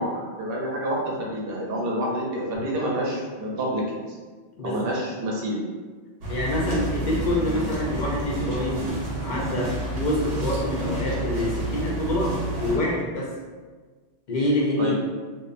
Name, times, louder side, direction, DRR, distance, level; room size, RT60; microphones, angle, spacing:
voice 1, 0.0-4.0 4.6-5.6 14.8-15.0, equal, 60° right, -2 dB, 0.7 m, -28 dB
voice 2, 4.5-4.9 6.3-13.3 14.3-15.0, left 1 dB, 60° left, -3 dB, 0.5 m, -26 dB
sound 1, 6.2-12.8, right 1 dB, 85° right, 1.0 m, -29 dB
2.5 x 2.1 x 2.4 m, 1.4 s
omnidirectional pair, 1.2 m